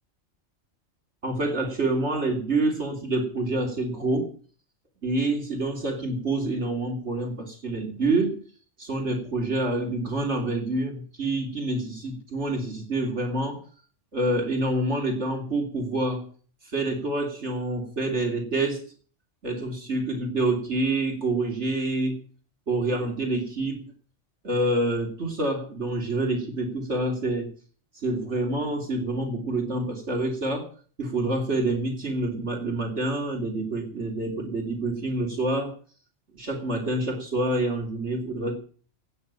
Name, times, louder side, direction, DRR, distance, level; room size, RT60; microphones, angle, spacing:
voice 1, 1.2-4.3 5.0-8.4 8.8-13.6 14.1-16.3 16.6-18.8 19.4-22.2 22.7-23.9 24.4-27.5 27.9-30.7 31.0-35.8 36.4-38.6, right 2 dB, 60° right, 2 dB, 3.0 m, -27 dB
18.0 x 6.9 x 8.7 m, 0.43 s
omnidirectional pair, 1.3 m